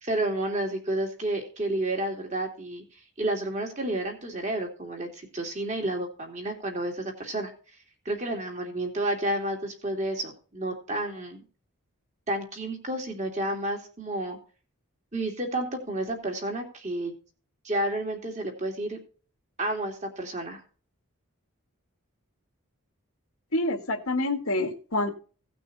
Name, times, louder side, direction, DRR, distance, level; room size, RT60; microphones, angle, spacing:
voice 1, 0.0-2.8 3.2-7.5 8.0-11.4 12.3-14.4 15.1-17.1 17.6-19.0 19.6-20.6, right 1 dB, 30° right, 3 dB, 3.0 m, -30 dB
voice 2, 23.5-25.1, left 2 dB, 80° left, 6 dB, 2.1 m, -27 dB
17.5 x 6.2 x 4.2 m, 0.37 s
head